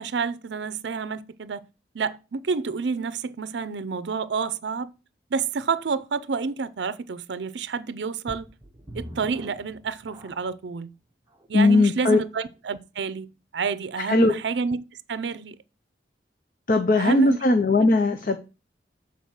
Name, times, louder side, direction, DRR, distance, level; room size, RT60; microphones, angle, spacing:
voice 1, 0.0-1.6 1.9-4.9 5.3-8.5 8.9-10.9 11.5-13.3 13.5-14.8 15.1-15.6 17.0-17.4, right 5 dB, 75° right, 0.5 m, -29 dB
sound 1, 8.3-10.7 11.4-11.5 12.1-12.2, right 1 dB, 20° right, 0.9 m, -42 dB
voice 2, 11.5-12.2 14.1-14.3 16.7-18.4, left 2 dB, 50° left, 0.6 m, -19 dB
6.9 x 4.0 x 6.4 m
head